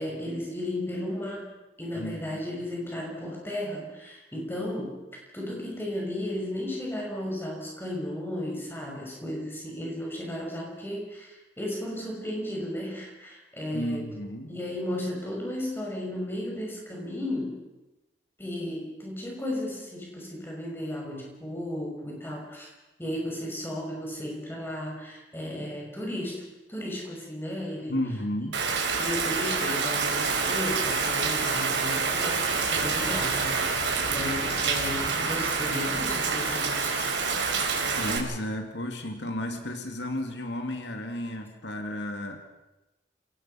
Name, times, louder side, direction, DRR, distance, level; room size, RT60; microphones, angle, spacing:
voice 1, 0.0-14.1 14.5-17.6 18.4-22.7 23.0-26.4 26.7-27.9 29.0-33.8 34.1-37.1, left 1 dB, 10° left, -2 dB, 6.0 m, -34 dB
voice 2, 1.9-2.4 13.7-14.5 27.9-28.6 37.9-42.4, left 1 dB, 80° left, 5 dB, 2.4 m, -33 dB
Rain, 28.5-38.2, right 4 dB, 85° right, 4.0 m, -27 dB
28.5 x 18.0 x 5.8 m, 1.0 s
head